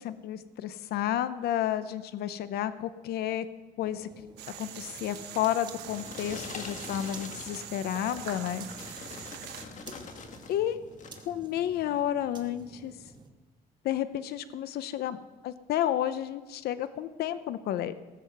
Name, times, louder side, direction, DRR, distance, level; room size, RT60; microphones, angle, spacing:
voice 1, 0.0-3.5 3.8-4.3 4.6-8.9 10.5-10.8 11.3-12.9 13.8-15.2 15.4-17.9, left 11 dB, 70° left, 13 dB, 0.7 m, -31 dB
sound 1, 3.8-13.3, right 3 dB, 25° right, 1.3 m, -51 dB
sound 2, 4.4-9.6, right 11 dB, 80° right, 1.1 m, -43 dB
sound 3, 5.5-10.6 10.9-11.3 11.9-12.1, left 5 dB, 45° left, 1.6 m, -44 dB
18.0 x 7.6 x 6.7 m, 1.2 s
cardioid pair, 110°, 17 cm